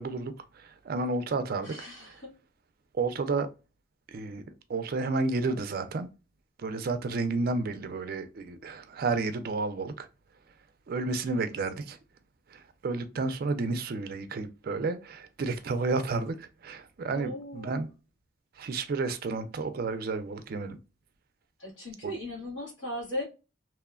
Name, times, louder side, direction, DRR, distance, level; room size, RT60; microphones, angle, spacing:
voice 1, 0.0-1.7 2.9-3.5 4.1-4.4 4.7-6.1 6.6-10.1 10.9-12.0 12.5-17.9 18.6-20.8 22.0-22.1, right 3 dB, 55° right, 0.4 m, -31 dB
voice 2, 1.6-2.3 11.7-11.9 17.1-17.8 21.6-23.2, left 1 dB, 85° left, 1.3 m, -38 dB
2.9 x 2.1 x 2.3 m
head